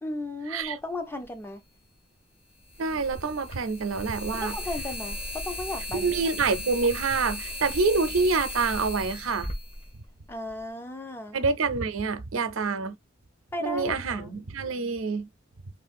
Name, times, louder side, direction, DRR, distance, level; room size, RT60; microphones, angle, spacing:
voice 1, 0.0-1.6 4.3-6.1 10.3-11.4 13.5-14.3, left 2 dB, 10° left, 0.4 m, -35 dB
sound 1, 1.2-1.3 2.7-10.6, left 1 dB, 30° left, 0.9 m, -36 dB
voice 2, 2.8-4.5 5.9-9.5 11.3-12.9 13.6-15.3, right 4 dB, 90° right, 0.6 m, -27 dB
3.2 x 2.4 x 2.5 m
head